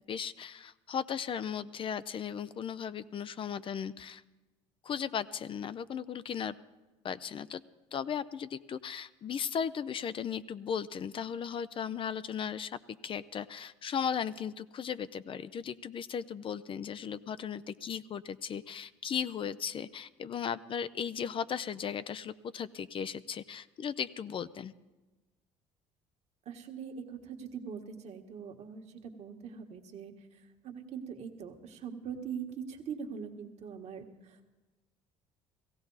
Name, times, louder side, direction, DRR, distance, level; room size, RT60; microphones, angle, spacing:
voice 1, 0.1-4.2 4.8-6.6 7.0-7.6 7.9-24.7, left 7 dB, 40° left, 15 dB, 0.4 m, -36 dB
voice 2, 26.4-34.5, right 7 dB, 55° right, 3 dB, 1.6 m, -42 dB
16.5 x 15.5 x 4.0 m, 1.2 s
supercardioid pair, 80°, 13 cm